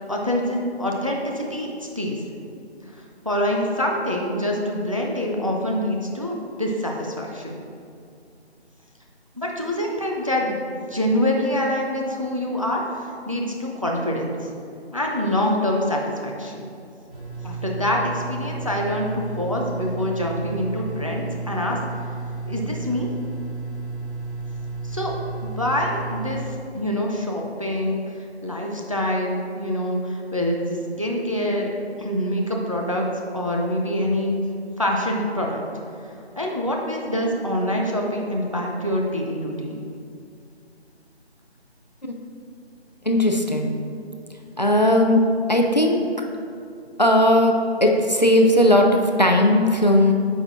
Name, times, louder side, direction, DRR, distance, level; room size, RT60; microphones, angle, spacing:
voice 1, 0.1-2.2 3.2-7.6 9.4-12.8 13.3-14.5 14.9-16.6 17.4-21.8 22.5-23.1 24.8-25.1 25.4-26.4 26.7-30.6 31.0-31.7 32.0-33.1 33.3-34.4 34.8-35.6 36.4-39.8, left 1 dB, 30° right, 0 dB, 0.5 m, -25 dB
sound 1, 17.1-26.4, right 3 dB, 5° right, 1.2 m, -32 dB
voice 2, 43.1-43.8 44.6-45.2 45.5-46.0 47.0-50.1, left 1 dB, 40° left, 2 dB, 0.4 m, -17 dB
8.7 x 4.5 x 2.6 m, 2.4 s
figure-of-eight pair, 165°, 33 cm